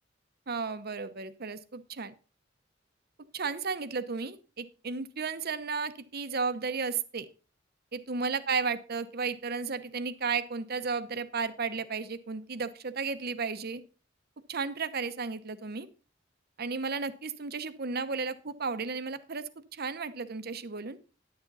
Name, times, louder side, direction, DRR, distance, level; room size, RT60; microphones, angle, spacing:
voice 1, 0.5-2.1 3.3-7.3 7.9-13.8 14.5-15.9 16.6-21.0, right 5 dB, 55° right, 13 dB, 0.9 m, -34 dB
10.5 x 9.8 x 4.0 m, 0.35 s
head